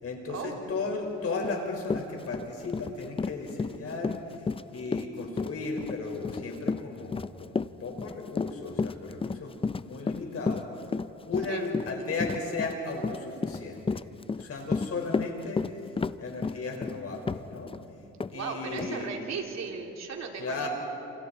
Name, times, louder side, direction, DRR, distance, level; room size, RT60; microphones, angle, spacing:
voice 1, 0.0-4.2 4.7-10.7 11.3-14.0 14.3-15.6 16.2-17.7 18.3-19.1 20.4-20.7, left 3 dB, 50° left, 1 dB, 5.5 m, -35 dB
Run, 1.4-1.5 1.8-17.8 18.2-18.3 18.8-18.9, left 4 dB, 20° left, 0.5 m, -32 dB
voice 2, 18.3-20.7, right 5 dB, 60° right, 1 dB, 3.3 m, -36 dB
30.0 x 28.0 x 4.5 m, 2.9 s
cardioid pair, 90°, 30 cm